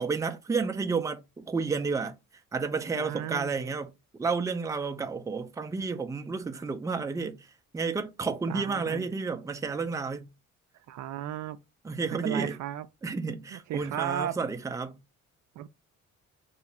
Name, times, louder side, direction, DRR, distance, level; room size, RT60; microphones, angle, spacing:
voice 1, 0.0-2.1 2.5-3.9 4.2-7.4 7.7-10.3 11.8-12.6 13.0-15.0, right 4 dB, 10° right, 0.4 m, -31 dB
voice 2, 3.0-3.7 8.5-9.1 10.9-11.6 12.1-12.9 13.5-14.4 15.6-15.7, right 11 dB, 70° right, 0.4 m, -35 dB
2.8 x 2.4 x 4.1 m
cardioid pair, 90°, 30 cm